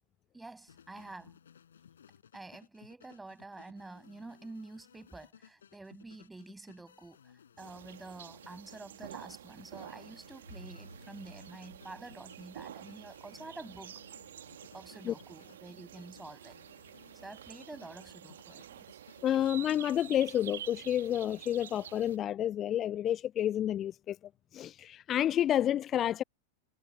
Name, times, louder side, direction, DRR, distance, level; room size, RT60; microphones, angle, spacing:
voice 1, 0.3-1.4 2.3-14.0 14.7-16.6 17.2-19.0, right 2 dB, 10° right, 7.4 m, -48 dB
sound 1, 0.7-19.3, left 8 dB, 65° left, 7.0 m, -60 dB
sound 2, 7.6-22.2, right 10 dB, 60° right, 1.9 m, -49 dB
sound 3, 10.3-14.4, right 1 dB, 85° right, 5.4 m, -55 dB
voice 2, 19.2-24.2 24.5-26.2, left 11 dB, 30° left, 0.3 m, -30 dB
figure-of-eight pair, 90°, 0 cm